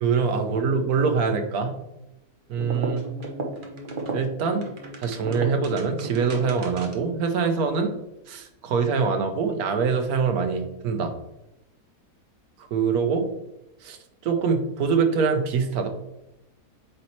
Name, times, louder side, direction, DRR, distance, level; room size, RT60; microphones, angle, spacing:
voice 1, 0.0-1.7 2.5-3.1 4.1-4.6 5.0-7.9 8.3-11.1 12.7-13.3 13.8-14.0 14.2-15.9, right 5 dB, 70° right, 5 dB, 1.3 m, -24 dB
sound 1, 2.5-7.1, right 2 dB, 40° right, 0.9 m, -34 dB
8.2 x 4.2 x 3.1 m, 0.90 s
omnidirectional pair, 1.6 m